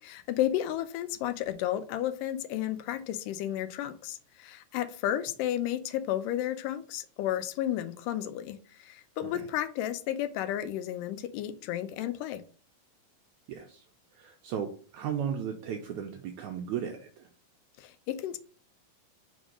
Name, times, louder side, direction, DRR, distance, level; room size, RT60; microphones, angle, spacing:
voice 1, 0.0-12.4 17.8-18.4, left 12 dB, 80° left, 11 dB, 2.1 m, -32 dB
voice 2, 13.5-13.9 14.1-17.3, right 8 dB, 90° right, 4 dB, 1.6 m, -36 dB
5.1 x 3.9 x 4.9 m, 0.40 s
omnidirectional pair, 3.9 m